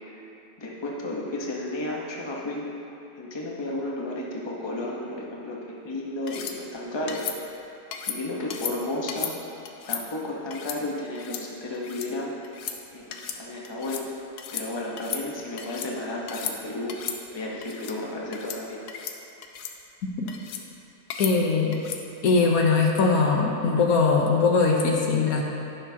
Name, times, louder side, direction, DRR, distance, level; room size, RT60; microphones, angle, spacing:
voice 1, 0.6-2.7 3.2-7.2 8.1-9.3 9.9-12.3 12.9-14.1 14.5-17.0 17.3-18.8, left 1 dB, 20° left, -3 dB, 0.9 m, -33 dB
sound 1, 6.3-6.6 7.1-7.4 7.9-8.2 8.5-8.7 9.1-9.3 9.7-10.0 10.5-10.8 11.2-11.4 11.7-12.1 12.4-12.8 13.1-13.4 13.6-14.1 14.4-14.7 15.0-15.9 16.3-16.6 16.9-17.2 17.6-18.0 18.3-18.6 18.9-19.2 19.4-19.7 20.3-20.6 21.1-21.3 21.7-22.0, left 8 dB, 80° left, 1.2 m, -34 dB
voice 2, 21.2-21.8 22.2-25.4, left 4 dB, 65° left, 0 dB, 1.2 m, -21 dB
11.0 x 9.6 x 2.8 m, 2.8 s
omnidirectional pair, 1.7 m